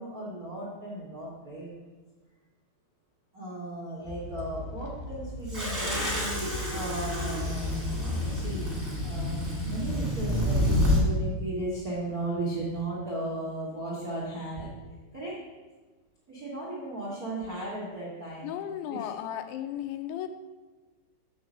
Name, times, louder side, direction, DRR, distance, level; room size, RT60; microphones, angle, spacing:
voice 1, 0.0-1.8 3.3-6.4 6.7-8.7 9.0-14.9 15.1-15.4 16.3-18.5 18.9-19.1, right 1 dB, 80° right, -6 dB, 0.8 m, -36 dB
sound 1, 4.0-10.3 10.8-11.0 12.0-12.1 12.8-12.9, left 2 dB, 70° left, 2.9 m, -35 dB
sound 2, 5.5-11.0, left 1 dB, 5° right, 1.7 m, -29 dB
voice 2, 18.4-20.3, left 11 dB, 90° left, 8 dB, 3.0 m, -35 dB
8.0 x 6.1 x 6.3 m, 1.3 s
omnidirectional pair, 5.2 m